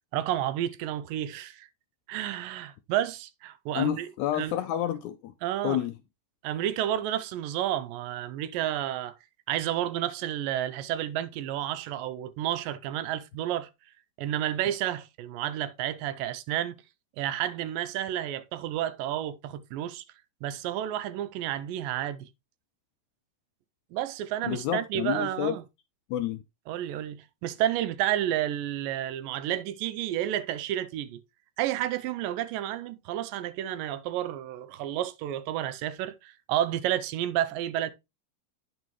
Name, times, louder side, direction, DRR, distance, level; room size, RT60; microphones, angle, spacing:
voice 1, 0.1-1.7 2.1-4.1 4.3-4.5 5.4-5.8 6.4-9.2 9.5-13.7 14.2-16.8 17.2-20.0 20.4-22.3 23.9-25.6 26.7-31.2 31.6-37.9, right 12 dB, 85° right, 2.3 m, -31 dB
voice 2, 3.7-5.3 5.6-5.9 24.5-25.6 26.1-26.4, left 12 dB, 80° left, 1.7 m, -29 dB
9.4 x 6.0 x 3.0 m
omnidirectional pair, 4.0 m